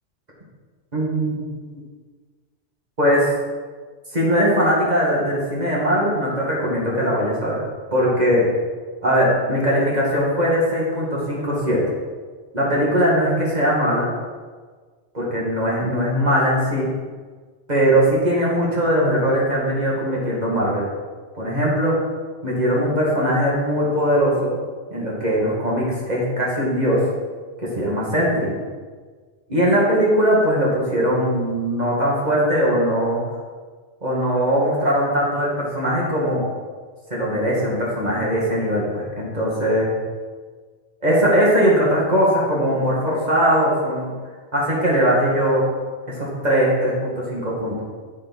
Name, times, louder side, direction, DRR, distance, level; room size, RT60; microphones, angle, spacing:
voice 1, 0.9-1.4 3.0-3.3 4.1-7.6 7.9-8.4 9.0-11.8 12.5-14.1 15.1-16.9 17.7-20.8 21.3-22.0 22.4-24.5 24.9-27.0 27.6-28.5 29.5-33.2 34.0-36.4 37.1-39.9 41.0-44.1 44.5-45.6 46.0-47.8, equal, 35° right, -5 dB, 2.5 m, -20 dB
7.6 x 7.1 x 5.5 m, 1.5 s
omnidirectional pair, 1.2 m